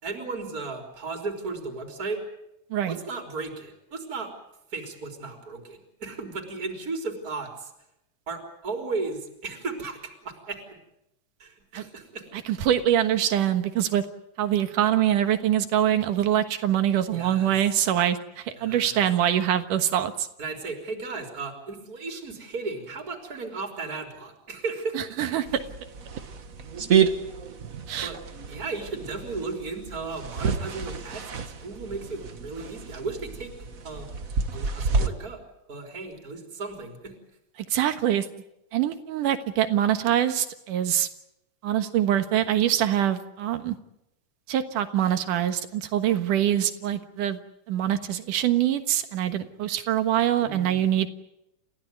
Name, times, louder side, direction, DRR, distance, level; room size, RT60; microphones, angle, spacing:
voice 1, 0.0-2.2 2.9-4.3 4.7-7.7 8.3-10.8 11.4-12.4 17.1-17.5 18.6-19.0 20.4-25.2 28.0-28.2 28.5-33.5 33.8-34.1 34.5-35.4 35.7-37.1 50.4-50.8, right 3 dB, 25° right, 3 dB, 4.0 m, -35 dB
voice 2, 12.5-14.0 14.4-20.3 24.9-25.6 27.9-28.1 37.7-38.3 38.7-41.1 41.6-43.8 44.5-47.4 47.7-51.1, right 11 dB, 85° right, 9 dB, 3.0 m, -24 dB
sound 1, 25.4-35.1, right 6 dB, 55° right, 0.9 m, -29 dB
29.5 x 15.5 x 9.5 m, 0.86 s
omnidirectional pair, 3.6 m